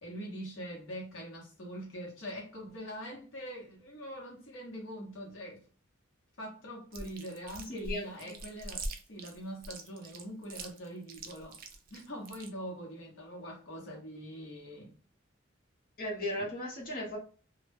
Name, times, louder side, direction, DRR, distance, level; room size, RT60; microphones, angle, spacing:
voice 1, 0.0-5.6 6.4-11.6 11.9-14.9 16.3-16.5, equal, 80° left, -2 dB, 0.8 m, -43 dB
Chewing mastication, 6.9-12.5, right 2 dB, 45° right, 0.4 m, -42 dB
voice 2, 7.6-8.3 16.0-17.2, left 1 dB, 45° left, -3 dB, 1.0 m, -37 dB
2.1 x 2.1 x 3.2 m, 0.39 s
head